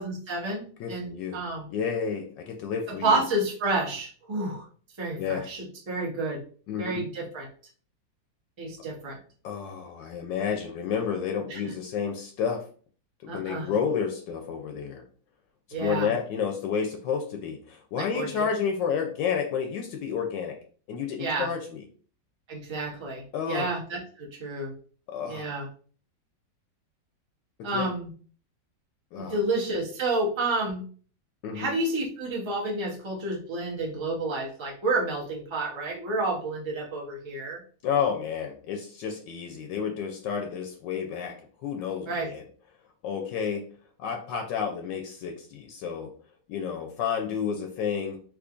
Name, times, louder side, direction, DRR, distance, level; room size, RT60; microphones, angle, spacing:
voice 1, 0.0-0.6 0.9-1.7 2.9-4.7 5.0-6.4 6.8-7.5 8.6-9.2 11.5-11.7 13.3-13.7 15.7-16.1 18.0-18.3 21.2-21.5 22.5-24.7 25.3-25.7 27.6-28.1 29.3-30.8 31.5-37.6 42.1-42.3, right 2 dB, 35° right, -2 dB, 0.4 m, -30 dB
voice 2, 0.8-1.4 1.7-3.2 5.2-5.5 6.7-7.0 9.4-12.7 13.2-15.0 15.7-20.6 20.9-21.8 23.3-23.7 25.1-25.5 27.7-27.9 29.1-29.3 31.4-31.7 37.8-42.4 43.0-43.6 44.0-46.1 46.5-48.2, left 7 dB, 75° left, 3 dB, 1.2 m, -30 dB
3.7 x 3.0 x 2.4 m, 0.43 s
omnidirectional pair, 2.0 m